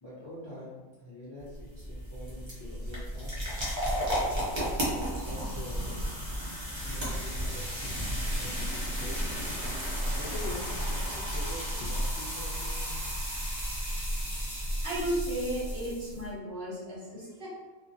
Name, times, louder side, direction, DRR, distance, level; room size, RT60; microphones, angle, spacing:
voice 1, 0.0-3.7 4.5-6.1 6.9-8.0 8.4-9.4 9.8-13.0, left 1 dB, 35° left, -10 dB, 0.4 m, -45 dB
sound 1, 1.4-16.3, equal, 40° right, 0.4 m, -33 dB
voice 2, 14.6-17.5, right 1 dB, 60° right, -7 dB, 0.7 m, -34 dB
2.3 x 2.0 x 2.6 m, 1.2 s
omnidirectional pair, 1.4 m